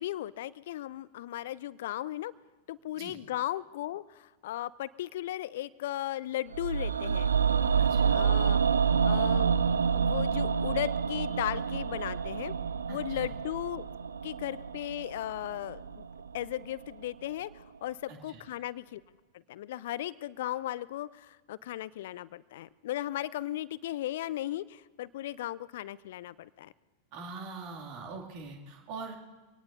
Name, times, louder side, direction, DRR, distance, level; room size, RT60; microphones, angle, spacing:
voice 1, 0.0-2.3 2.7-7.3 8.1-8.6 9.0-9.6 9.9-12.5 12.9-13.9 14.2-16.0 16.3-19.0 19.3-26.7, left 14 dB, 55° left, 20 dB, 0.4 m, -36 dB
sound 1, 6.5-16.6 16.9-17.0, right 6 dB, 70° right, 0.4 m, -28 dB
voice 2, 7.8-8.2 12.9-13.3 18.1-18.4 27.1-29.2, right 4 dB, 45° right, 0 dB, 2.6 m, -43 dB
25.0 x 18.0 x 2.7 m, 1.3 s
figure-of-eight pair, 90°, 0 cm